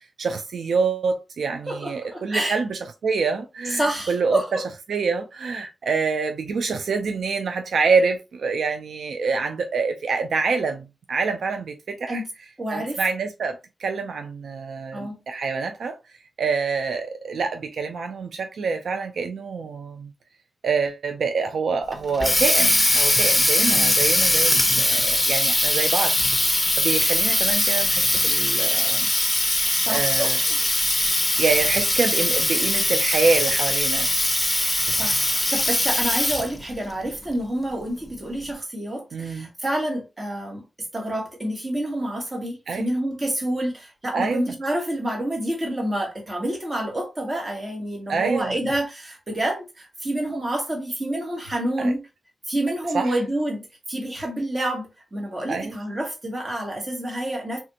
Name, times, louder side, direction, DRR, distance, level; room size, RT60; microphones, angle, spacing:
voice 1, 0.0-4.6 4.9-12.2 12.7-16.0 16.4-20.1 20.6-29.1 29.5-29.6 29.9-30.4 31.2-34.1 39.1-39.5 42.7-42.9 44.1-44.6 48.1-48.6 51.8-51.9 52.9-53.1 55.5-55.8, right 4 dB, 85° right, 0.3 m, -26 dB
voice 2, 1.7-2.6 3.6-4.6 12.1-12.3 12.6-13.0 14.9-15.2 23.6-23.9 29.8-30.6 34.9-40.6 40.9-52.0 52.5-53.6 53.9-57.6, right 1 dB, 35° right, 1.5 m, -28 dB
Water tap faucet, 21.9-36.6, left 1 dB, 15° left, 0.8 m, -21 dB
3.4 x 2.5 x 2.7 m
cardioid pair, 60°, 0 cm